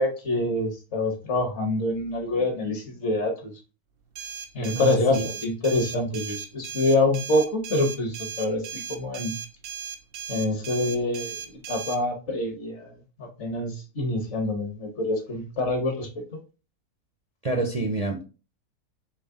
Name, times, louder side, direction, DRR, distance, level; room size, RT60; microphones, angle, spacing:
voice 1, 0.0-3.5 4.5-9.3 10.3-11.4 11.7-16.1, left 2 dB, 50° left, 1.3 m, -26 dB
sound 1, 4.2-12.0, right 7 dB, 75° right, 1.0 m, -37 dB
voice 2, 4.7-5.3 17.4-18.2, right 3 dB, 35° right, 0.6 m, -27 dB
4.6 x 3.1 x 3.7 m
omnidirectional pair, 1.6 m